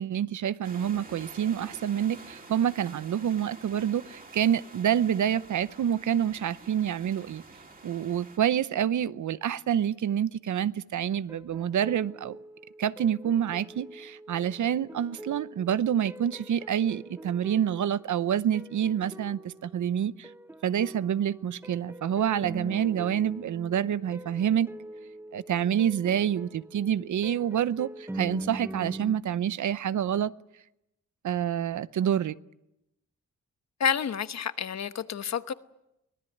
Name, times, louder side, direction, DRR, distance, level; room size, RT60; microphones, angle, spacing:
voice 1, 0.0-7.4 7.8-12.4 12.8-20.3 20.6-24.7 25.3-30.3 31.2-32.4, right 9 dB, 70° right, 0.8 m, -27 dB
sound 1, 0.6-8.4, right 3 dB, 30° right, 3.2 m, -48 dB
sound 2, 11.3-29.2, right 1 dB, 10° right, 0.9 m, -44 dB
voice 2, 33.8-35.5, left 7 dB, 60° left, 1.1 m, -29 dB
24.0 x 18.5 x 9.3 m
wide cardioid pair, 125°, 30 cm